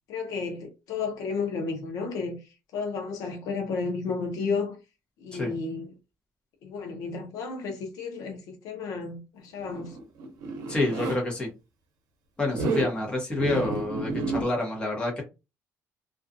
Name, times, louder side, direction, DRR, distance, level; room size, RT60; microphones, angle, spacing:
voice 1, 0.1-2.4 2.7-4.8 5.2-5.9 6.6-9.9, left 4 dB, 65° left, 0.7 m, -32 dB
Zipper (clothing), 9.6-11.2 12.5-12.9 13.4-14.4, right 3 dB, 75° right, 0.7 m, -30 dB
voice 2, 10.7-11.5 12.4-15.2, left 2 dB, 15° left, 0.9 m, -28 dB
2.4 x 2.3 x 2.6 m
cardioid pair, 180°, 7 cm